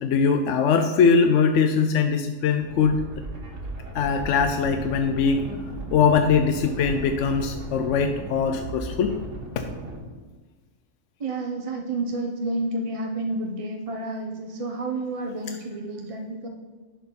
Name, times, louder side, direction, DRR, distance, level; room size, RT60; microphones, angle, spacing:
voice 1, 0.0-3.0 3.9-5.5 5.9-9.1 9.6-9.7 15.5-15.6, left 5 dB, 70° left, 6 dB, 0.9 m, -21 dB
sound 1, 2.6-10.0, right 2 dB, 65° right, 1.8 m, -36 dB
voice 2, 11.2-16.5, right 2 dB, 35° right, 3 dB, 0.6 m, -30 dB
10.5 x 4.6 x 5.3 m, 1.3 s
omnidirectional pair, 1.3 m